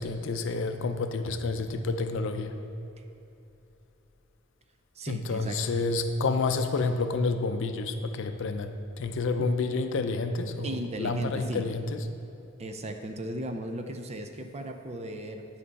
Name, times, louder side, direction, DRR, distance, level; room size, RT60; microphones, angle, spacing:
voice 1, 0.0-2.6 5.1-12.1, left 3 dB, 60° left, 8 dB, 0.4 m, -29 dB
voice 2, 5.0-5.7 9.4-9.5 10.6-11.7 12.6-15.5, right 1 dB, 30° right, 6 dB, 0.5 m, -36 dB
9.9 x 5.4 x 4.1 m, 2.8 s
head